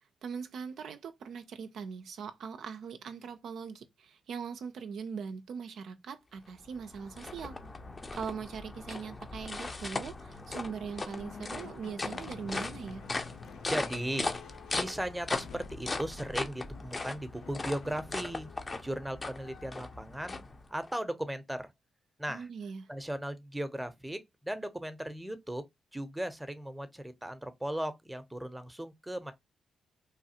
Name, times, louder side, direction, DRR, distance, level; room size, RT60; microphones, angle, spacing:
voice 1, 0.2-7.6 8.1-13.1 22.3-22.9, right 6 dB, 70° right, 0.4 m, -41 dB
sound 1, 6.5-20.9, left 3 dB, 30° left, 0.6 m, -39 dB
sound 2, 10.9-20.0, left 5 dB, 75° left, 0.4 m, -50 dB
voice 2, 13.7-18.5 18.8-20.4 20.7-21.7 22.2-22.5 22.9-25.6 25.9-29.3, right 1 dB, 10° right, 0.7 m, -37 dB
3.1 x 2.3 x 2.8 m
supercardioid pair, 60°, 0 cm